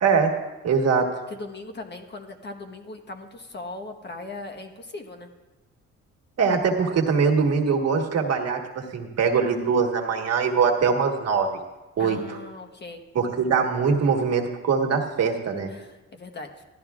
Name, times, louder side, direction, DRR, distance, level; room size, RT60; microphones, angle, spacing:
voice 1, 0.0-0.3 0.6-1.1 6.4-11.6 12.0-12.4 13.1-15.7, right 5 dB, 55° right, 2 dB, 1.5 m, -22 dB
voice 2, 1.3-5.3 12.0-13.0 15.7-16.6, left 2 dB, 35° left, 4 dB, 1.2 m, -39 dB
16.0 x 12.5 x 2.4 m, 1.1 s
cardioid pair, 90°, 30 cm